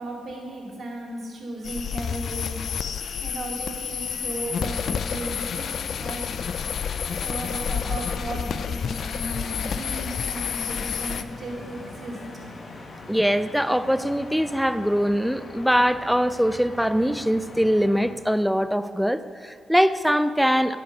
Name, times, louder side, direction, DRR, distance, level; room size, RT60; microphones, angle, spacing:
voice 1, 0.0-2.6 3.2-6.3 7.2-12.2, right 1 dB, 60° right, -1 dB, 2.5 m, -35 dB
sound 1, 1.6-11.2, left 7 dB, 65° left, 0.4 m, -29 dB
sound 2, 3.6-18.1, left 2 dB, 45° left, 1.3 m, -43 dB
voice 2, 13.1-20.8, equal, ahead, 13 dB, 0.4 m, -22 dB
11.0 x 5.4 x 6.6 m, 2.1 s
supercardioid pair, 60°, 0 cm